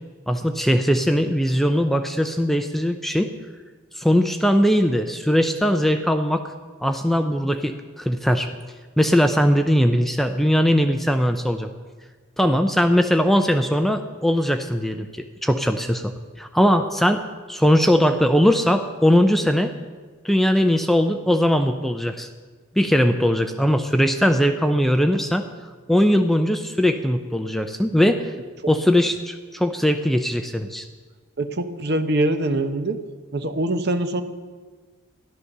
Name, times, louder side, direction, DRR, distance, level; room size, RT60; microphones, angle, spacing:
voice 1, 0.3-3.3 4.0-6.5 6.8-8.5 9.0-11.7 12.4-19.7 20.2-22.3 22.8-25.5 25.9-28.3 28.7-30.9, equal, ahead, 7 dB, 0.5 m, -20 dB
voice 2, 31.4-33.0 33.3-34.2, right 1 dB, 50° right, 9 dB, 0.9 m, -23 dB
14.0 x 11.5 x 6.6 m, 1.4 s
head